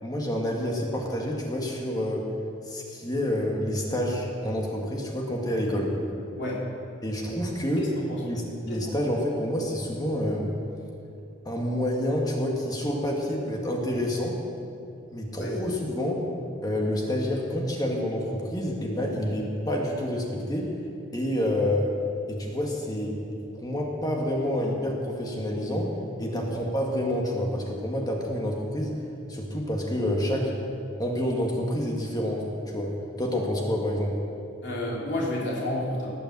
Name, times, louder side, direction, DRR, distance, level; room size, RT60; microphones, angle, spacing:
voice 1, 0.0-2.2 2.7-5.9 7.0-7.8 8.2-10.5 11.4-14.4 15.1-16.2 16.6-20.7 21.1-21.9 22.3-23.2 23.6-25.9 26.2-28.9 29.3-30.5 31.0-32.5 32.7-32.9 33.2-34.1, left 1 dB, 20° left, -1 dB, 1.9 m, -28 dB
voice 2, 7.8-8.4 8.7-8.9 15.4-15.5 26.3-26.4 34.6-36.1, left 1 dB, 65° left, -5 dB, 3.4 m, -31 dB
19.5 x 7.0 x 7.6 m, 2.6 s
head